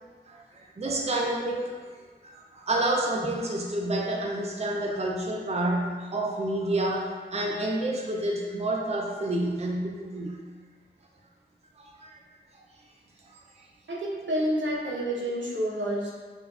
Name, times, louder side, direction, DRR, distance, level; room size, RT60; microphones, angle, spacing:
voice 1, 0.3-10.4 11.8-12.2 12.5-12.6 13.2-13.7, right 1 dB, 35° right, -1 dB, 0.5 m, -29 dB
voice 2, 13.9-16.1, equal, 85° right, -5 dB, 0.8 m, -29 dB
5.6 x 2.5 x 2.4 m, 1.5 s
wide cardioid pair, 55°, 19 cm